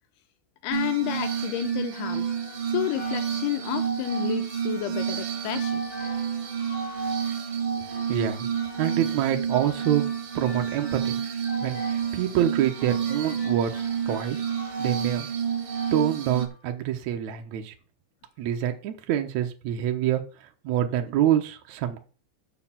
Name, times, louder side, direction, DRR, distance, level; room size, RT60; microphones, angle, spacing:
voice 1, 0.6-2.3 2.7-5.8, left 14 dB, 80° left, 2.3 m, -30 dB
Glass, 0.7-16.5, right 7 dB, 60° right, 1.6 m, -29 dB
sound 1, 0.9-16.7, left 5 dB, 60° left, 1.7 m, -47 dB
voice 2, 7.9-8.5 8.8-10.0 10.3-11.2 11.6-14.4 14.8-15.3 15.9-17.7 18.4-22.0, right 10 dB, 85° right, 1.6 m, -26 dB
6.7 x 6.6 x 7.3 m
omnidirectional pair, 4.9 m